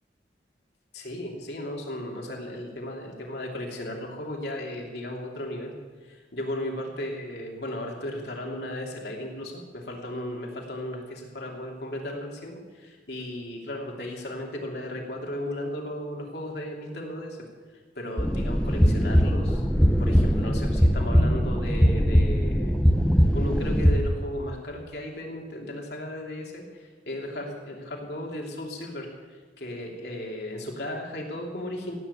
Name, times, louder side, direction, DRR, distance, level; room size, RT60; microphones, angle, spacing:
voice 1, 0.9-5.7 6.0-17.4 17.9-19.7 20.0-22.8 23.3-32.0, left 1 dB, 65° left, 0 dB, 3.0 m, -35 dB
sound 1, 18.2-24.0, equal, 5° left, 0.9 m, -21 dB
17.0 x 8.9 x 8.4 m, 1.4 s
head